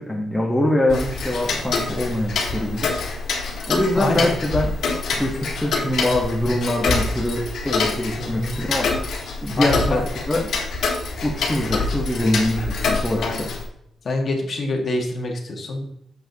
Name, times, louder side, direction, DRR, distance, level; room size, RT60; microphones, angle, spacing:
voice 1, 0.0-8.9 9.4-10.5 11.2-13.5, left 1 dB, 5° left, -2 dB, 1.1 m, -24 dB
Tick-tock, 0.9-13.7, left 4 dB, 75° left, 1.6 m, -26 dB
voice 2, 3.9-4.3 8.2-8.6 9.6-10.0 13.1-13.5 14.0-15.8, left 2 dB, 45° left, 2 dB, 1.7 m, -26 dB
10.0 x 7.4 x 2.8 m, 0.77 s
wide cardioid pair, 140°, 0 cm